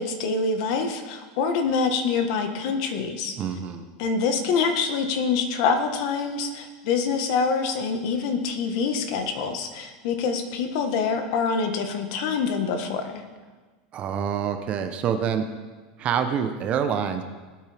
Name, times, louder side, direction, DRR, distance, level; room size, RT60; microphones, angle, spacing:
voice 1, 0.0-3.4 4.0-13.2, left 5 dB, 55° left, 6 dB, 1.4 m, -25 dB
voice 2, 3.4-3.8 13.9-15.4 16.0-17.2, right 8 dB, 30° right, 7 dB, 0.9 m, -26 dB
19.0 x 8.7 x 3.5 m, 1.4 s
supercardioid pair, 160°, 4 cm